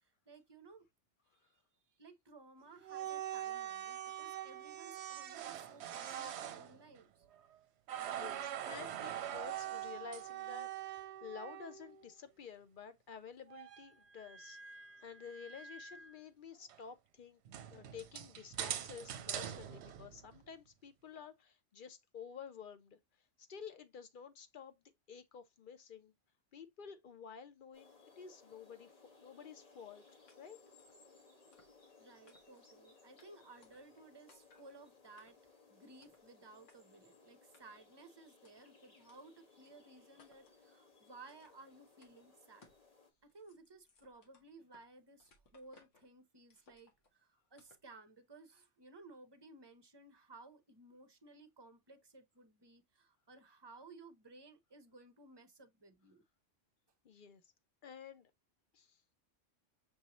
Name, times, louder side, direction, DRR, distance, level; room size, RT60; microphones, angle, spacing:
voice 1, 0.0-0.9 1.3-7.3 31.4-31.6 32.0-35.4 35.7-42.7 43.2-56.2, right 3 dB, 25° right, 0.7 m, -58 dB
sound 1, 2.8-7.6 7.9-12.1 13.5-16.2 16.7-16.8 17.5-20.5, right 10 dB, 70° right, 0.8 m, -44 dB
voice 2, 7.9-14.6 15.0-17.4 17.7-23.0 23.4-24.8 25.1-26.1 26.5-28.9 29.2-30.0 30.4-30.6 57.0-57.4 57.8-58.3 58.7-59.0, left 6 dB, 55° left, 0.7 m, -51 dB
sound 2, 27.7-43.1, left 4 dB, 35° left, 1.0 m, -64 dB
sound 3, 30.3-30.4 30.8-31.0 31.5-31.9 32.3-32.7 33.2-33.3 33.6-34.0 34.3-34.7 35.2-35.5 36.0-36.3 36.7-36.8 37.5-37.9 38.4-38.5 39.1-39.2 39.6-39.7 40.2-40.6 41.2-41.7 42.0-42.1 42.6-42.9 43.2-44.9 45.2-46.1 46.5-47.1 47.6-47.9, left 3 dB, 85° left, 1.5 m, -67 dB
6.3 x 2.7 x 2.9 m
omnidirectional pair, 1.2 m